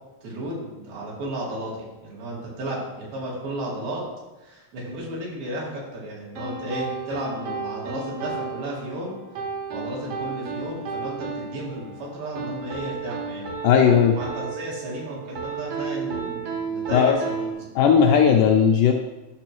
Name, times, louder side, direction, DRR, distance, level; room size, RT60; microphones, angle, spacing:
voice 1, 0.2-4.1 4.4-9.2 9.7-13.5 14.1-18.2, right 1 dB, 85° right, -5 dB, 4.0 m, -33 dB
sound 1, 6.3-17.5, right 4 dB, 60° right, 1.7 m, -33 dB
voice 2, 13.6-14.2 16.9-17.2 17.8-18.9, left 7 dB, 80° left, 2 dB, 1.9 m, -16 dB
11.0 x 6.2 x 3.0 m, 1.0 s
omnidirectional pair, 4.1 m